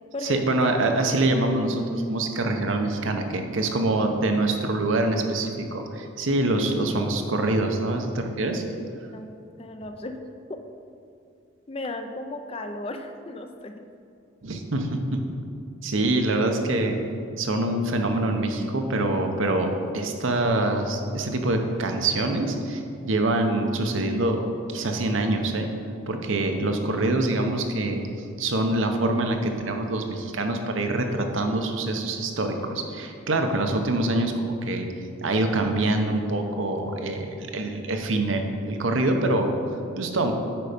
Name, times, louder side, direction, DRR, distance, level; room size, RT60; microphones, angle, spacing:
voice 1, 0.2-8.6 14.4-15.3 15.8-17.0 17.4-24.4 24.7-25.7 26.1-34.9 35.2-39.5 40.0-40.3, right 2 dB, 75° right, 4 dB, 0.8 m, -25 dB
voice 2, 9.1-10.2 10.5-10.6 11.7-13.8, left 2 dB, 30° left, 7 dB, 0.4 m, -35 dB
8.9 x 5.4 x 5.1 m, 2.5 s
head